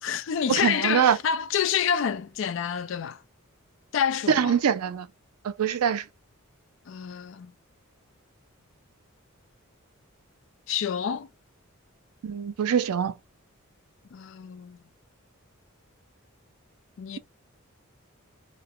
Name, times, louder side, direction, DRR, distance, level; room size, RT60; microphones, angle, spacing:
voice 1, 0.0-3.2 3.9-4.6 6.9-7.5 10.7-11.3 14.1-14.8 17.0-17.2, left 8 dB, 60° left, 0.3 m, -28 dB
voice 2, 0.6-1.2 4.3-5.1 5.4-6.1 12.2-13.1, right 8 dB, 90° right, 0.4 m, -24 dB
3.0 x 2.1 x 2.4 m
head